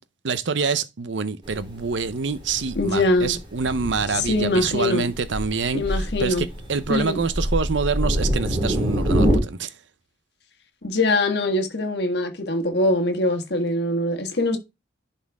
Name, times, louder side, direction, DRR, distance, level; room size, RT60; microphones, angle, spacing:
voice 1, 0.2-9.7, right 5 dB, 80° right, 0.7 m, -26 dB
Thunder, 1.4-9.4, equal, 25° right, 2.1 m, -26 dB
voice 2, 2.7-3.4 4.1-5.1 5.7-6.5 6.9-7.2 10.8-14.6, left 2 dB, 60° left, 1.6 m, -23 dB
11.0 x 4.3 x 3.5 m
head